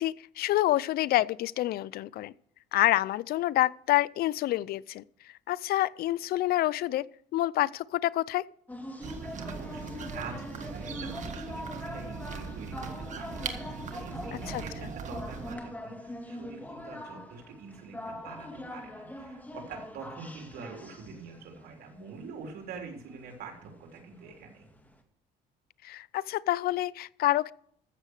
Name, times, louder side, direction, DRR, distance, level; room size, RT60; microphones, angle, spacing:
voice 1, 0.0-2.3 2.7-5.0 5.5-7.1 7.3-8.4 14.5-14.6 25.8-27.5, left 15 dB, 65° left, 0.5 m, -27 dB
sound 1, 8.7-24.9, left 1 dB, 10° left, 2.0 m, -43 dB
sound 2, 9.0-15.6, right 5 dB, 45° right, 1.8 m, -40 dB
voice 2, 9.2-12.9 13.2-13.4 13.9-24.7, right 4 dB, 65° right, 3.7 m, -45 dB
14.5 x 7.2 x 6.5 m
cardioid pair, 110°, 17 cm